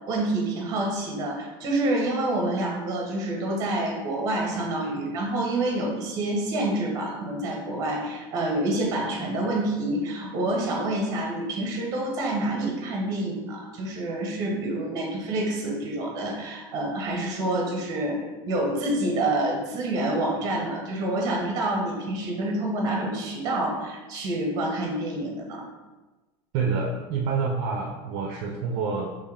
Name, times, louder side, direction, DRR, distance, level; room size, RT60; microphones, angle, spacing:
voice 1, 0.1-18.2 18.5-25.7, right 1 dB, 30° right, 0 dB, 0.9 m, -27 dB
voice 2, 26.5-29.1, right 5 dB, 55° right, 0 dB, 0.5 m, -27 dB
4.4 x 3.0 x 3.4 m, 1.2 s
cardioid pair, 180°, 12 cm